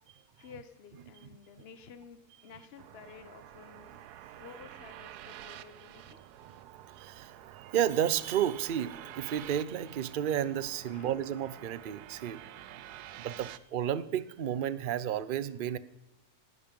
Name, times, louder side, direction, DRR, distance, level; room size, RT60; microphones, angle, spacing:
voice 1, 0.4-4.0 4.4-6.2 10.9-11.2, left 6 dB, 45° left, 11 dB, 1.2 m, -52 dB
sound 1, 2.8-13.6, right 12 dB, 85° right, 1.2 m, -49 dB
voice 2, 6.4-12.4 12.7-12.8 13.2-15.8, right 10 dB, 55° right, 16 dB, 0.6 m, -32 dB
18.0 x 10.5 x 5.3 m, 0.99 s
omnidirectional pair, 1.6 m